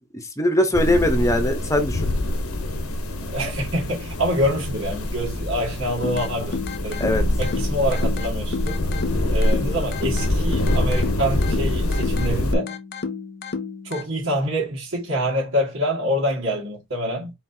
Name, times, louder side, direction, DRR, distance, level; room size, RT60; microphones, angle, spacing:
voice 1, 0.1-2.1 7.0-7.2, left 1 dB, 15° left, 0.9 m, -21 dB
sound 1, 0.7-12.5, left 1 dB, 85° left, 1.0 m, -25 dB
voice 2, 3.3-7.1 7.4-8.8 9.3-12.7 13.8-17.3, equal, 70° right, 1.7 m, -26 dB
sound 2, 6.0-14.0, left 5 dB, 45° left, 0.6 m, -32 dB
4.4 x 4.3 x 2.7 m
head